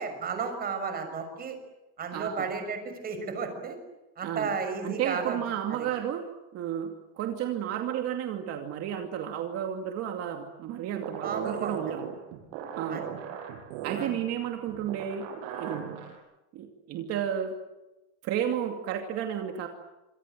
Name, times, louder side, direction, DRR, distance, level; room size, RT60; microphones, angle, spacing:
voice 1, 0.0-1.6 2.0-3.8 4.2-5.4 5.7-5.9 11.2-11.8 12.9-13.0 13.9-14.1, right 5 dB, 25° right, 6 dB, 6.2 m, -33 dB
voice 2, 2.1-2.5 4.2-4.5 4.8-6.2 6.5-12.1 12.8-13.0 13.8-15.3 15.6-15.9 16.5-17.6 18.2-19.7, right 9 dB, 40° right, 4 dB, 2.6 m, -32 dB
sound 1, 11.0-16.2, right 8 dB, 65° right, 7.0 m, -38 dB
27.0 x 26.5 x 7.7 m, 1.0 s
cardioid pair, 175°, 38 cm